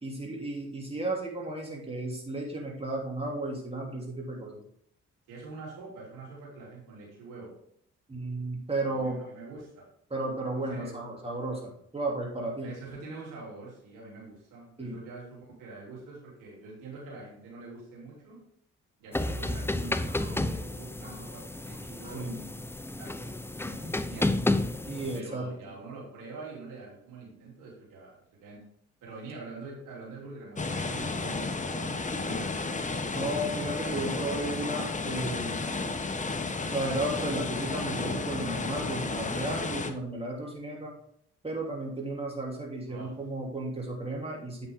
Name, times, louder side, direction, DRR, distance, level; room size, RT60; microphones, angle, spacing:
voice 1, 0.0-4.6 8.1-9.2 10.1-12.7 14.8-15.0 22.0-22.5 24.8-25.5 33.1-35.6 36.7-40.9 41.4-44.7, right 2 dB, 20° right, -1 dB, 2.9 m, -34 dB
voice 2, 5.3-7.5 8.8-9.9 10.4-11.0 12.6-18.4 19.0-22.3 23.0-24.5 25.1-28.6 29.0-32.7 42.9-43.2, right 3 dB, 90° right, -3 dB, 3.2 m, -45 dB
sound 1, 19.1-25.2, left 2 dB, 10° left, 0.6 m, -31 dB
sound 2, 30.6-39.9, left 3 dB, 25° left, 1.1 m, -32 dB
8.9 x 5.9 x 3.7 m, 0.66 s
supercardioid pair, 65°, 31 cm